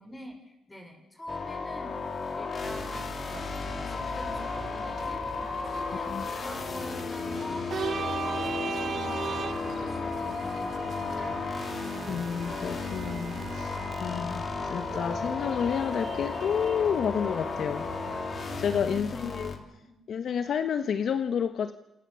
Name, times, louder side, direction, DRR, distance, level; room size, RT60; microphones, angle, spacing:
voice 1, 0.0-3.6 3.9-11.5 18.8-19.9, left 1 dB, 15° left, 4 dB, 6.2 m, -45 dB
sound 1, 1.3-19.6, left 4 dB, 45° left, 3.6 m, -34 dB
sound 2, 2.6-18.9, right 6 dB, 55° right, 2.2 m, -40 dB
voice 2, 5.8-6.2 12.1-19.5 20.1-21.7, left 7 dB, 60° left, 9 dB, 1.3 m, -30 dB
28.0 x 26.5 x 7.1 m, 0.91 s
cardioid pair, 90°, 0 cm